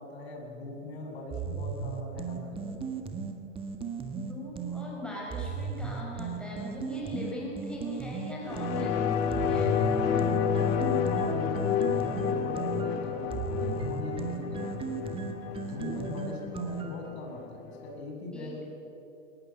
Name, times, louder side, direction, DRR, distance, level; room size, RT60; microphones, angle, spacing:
voice 1, 0.0-2.7 10.6-14.6 15.6-18.6, left 2 dB, 55° left, 0 dB, 7.7 m, -40 dB
sound 1, 1.3-4.8 5.3-8.8 9.3-17.1, right 5 dB, 15° right, 1.8 m, -36 dB
voice 2, 4.1-9.7 18.3-18.6, equal, ahead, -4 dB, 5.2 m, -39 dB
sound 2, 8.5-17.5 17.8-17.9, left 7 dB, 40° left, 2.3 m, -30 dB
22.0 x 19.5 x 8.3 m, 2.9 s
hypercardioid pair, 130°, 38 cm